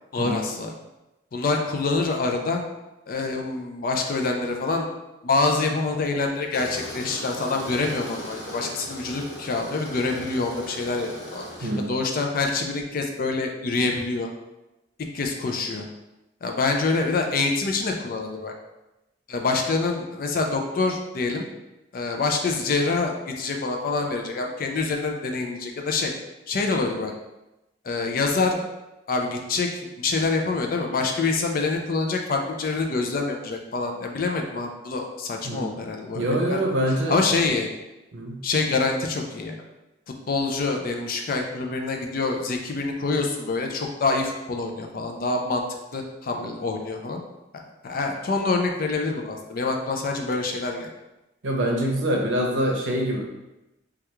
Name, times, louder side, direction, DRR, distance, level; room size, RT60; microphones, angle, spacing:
voice 1, 0.1-0.7 1.3-2.6 3.1-4.9 5.2-14.3 15.1-15.9 16.4-18.5 19.3-21.4 21.9-26.1 26.5-27.1 27.8-28.6 29.1-36.6 37.1-37.7 38.4-39.6 40.3-45.6 45.9-47.2 47.5-50.9, left 3 dB, 50° left, 3 dB, 0.4 m, -26 dB
Tools, 6.5-11.9, equal, 85° left, 1.0 m, -38 dB
voice 2, 11.6-11.9 35.4-35.7 36.1-37.2 38.1-38.4 51.4-53.2, equal, 75° right, 0 dB, 0.6 m, -25 dB
3.3 x 2.3 x 2.9 m, 0.98 s
head